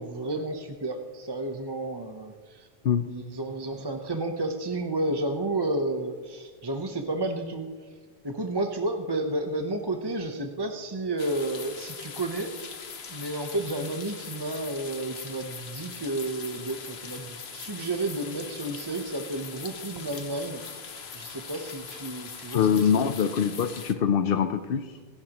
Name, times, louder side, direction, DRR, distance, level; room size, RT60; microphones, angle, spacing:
voice 1, 0.0-2.7 3.1-7.9 8.2-12.8 13.1-20.6 21.1-23.1, right 2 dB, 25° right, 4 dB, 0.8 m, -31 dB
sound 1, 11.2-23.9, left 6 dB, 85° left, 1.3 m, -41 dB
voice 2, 22.5-25.0, left 7 dB, 65° left, 9 dB, 0.8 m, -24 dB
26.0 x 11.5 x 3.0 m, 1.5 s
omnidirectional pair, 1.0 m